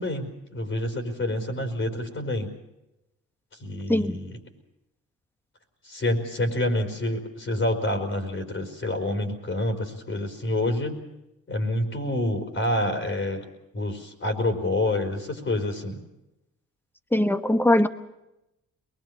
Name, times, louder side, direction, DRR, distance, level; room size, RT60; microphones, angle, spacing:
voice 1, 0.0-2.5 3.6-4.4 5.8-11.0 11.5-13.5 13.7-16.0, left 1 dB, 40° left, 4 dB, 4.7 m, -27 dB
voice 2, 17.1-17.9, left 1 dB, 5° left, 11 dB, 1.2 m, -21 dB
23.0 x 20.5 x 7.0 m, 0.90 s
cardioid pair, 90°, 30 cm